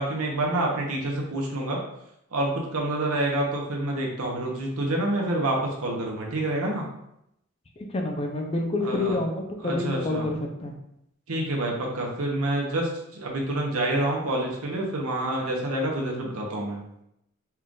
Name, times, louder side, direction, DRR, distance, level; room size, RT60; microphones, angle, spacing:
voice 1, 0.0-1.8 2.3-6.8 8.8-9.2 9.6-10.3 11.3-17.0, right 1 dB, 90° right, -1 dB, 1.0 m, -27 dB
voice 2, 7.8-10.7, left 2 dB, 25° left, 2 dB, 0.5 m, -28 dB
4.4 x 2.5 x 3.7 m, 0.80 s
head